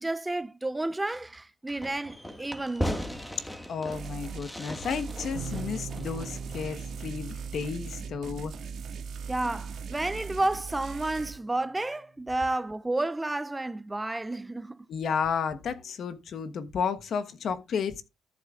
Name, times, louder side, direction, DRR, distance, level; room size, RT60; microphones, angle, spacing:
voice 1, 0.0-3.1 9.3-14.8, right 2 dB, 15° right, 0.5 m, -31 dB
Fireworks, 1.8-7.0, equal, 10° left, 1.8 m, -38 dB
voice 2, 3.7-8.5 14.9-18.0, left 6 dB, 65° left, 1.2 m, -32 dB
sound 1, 3.9-4.4 4.8-11.3, right 6 dB, 70° right, 1.7 m, -39 dB
sound 2, 5.3-10.9, right 4 dB, 85° right, 1.7 m, -44 dB
13.5 x 7.8 x 2.4 m
cardioid pair, 80°, 0 cm